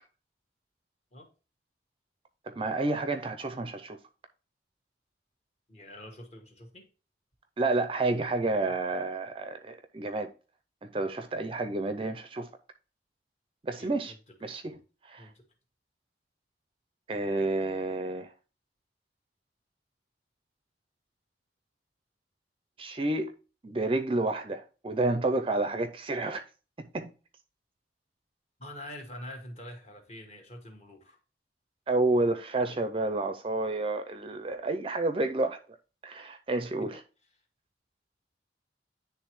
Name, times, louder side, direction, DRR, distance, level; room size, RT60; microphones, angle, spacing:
voice 1, 2.5-4.0 7.6-10.3 10.8-12.5 13.6-14.1 14.4-15.3 17.1-18.3 22.8-23.3 23.6-26.4 26.8-27.1 31.9-35.6 36.0-37.0, right 2 dB, 30° right, 0.4 m, -30 dB
voice 2, 5.7-6.9 13.8-14.2 14.6-14.8 15.2-15.4 28.6-31.2 36.6-36.9, left 1 dB, 35° left, 1.3 m, -45 dB
10.0 x 3.4 x 3.0 m
head